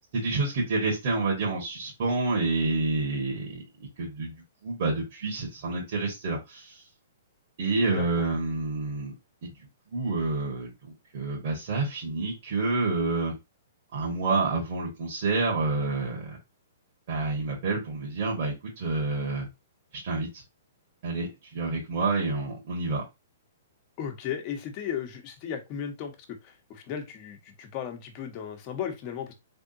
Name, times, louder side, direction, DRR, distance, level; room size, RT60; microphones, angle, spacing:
voice 1, 0.1-3.6 4.0-4.3 4.6-6.8 7.6-9.1 9.4-9.5 9.9-10.7 11.1-13.3 13.9-16.4 17.1-19.5 20.0-20.4 21.0-23.0, right 3 dB, 55° right, -3 dB, 1.7 m, -28 dB
voice 2, 7.8-8.2 24.0-26.1 26.4-29.3, left 8 dB, 40° left, 5 dB, 1.2 m, -35 dB
3.6 x 3.5 x 2.7 m, 0.23 s
hypercardioid pair, 130°, 0 cm